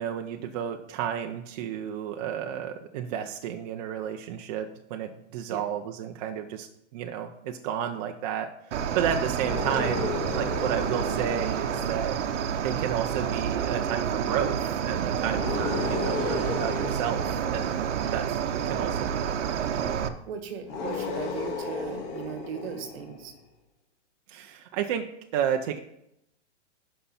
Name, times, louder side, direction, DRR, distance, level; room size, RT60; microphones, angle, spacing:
voice 1, 0.0-12.2 12.6-18.4 18.6-19.9 24.3-25.1 25.3-25.8, right 9 dB, 35° right, 4 dB, 0.6 m, -32 dB
Cricket, 8.7-20.1, right 8 dB, 70° right, 0.9 m, -29 dB
sound 1, 9.3-12.9 15.3-18.4 20.6-23.3, left 4 dB, 40° left, 1.9 m, -35 dB
voice 2, 20.3-23.3, right 8 dB, 55° right, 7 dB, 1.4 m, -37 dB
11.0 x 5.6 x 4.3 m, 0.79 s
hypercardioid pair, 150°, 36 cm